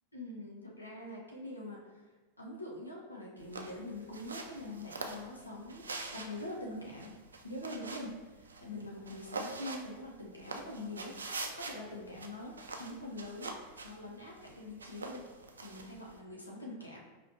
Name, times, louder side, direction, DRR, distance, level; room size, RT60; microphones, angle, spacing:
voice 1, 0.1-2.0 2.4-7.1 7.4-13.5 13.8-15.3 15.6-17.0, left 1 dB, 80° left, -3 dB, 0.6 m, -44 dB
sound 1, 3.4-16.2, right 3 dB, 75° right, 0.4 m, -45 dB
4.9 x 2.8 x 2.7 m, 1.2 s
figure-of-eight pair, 90°, 0 cm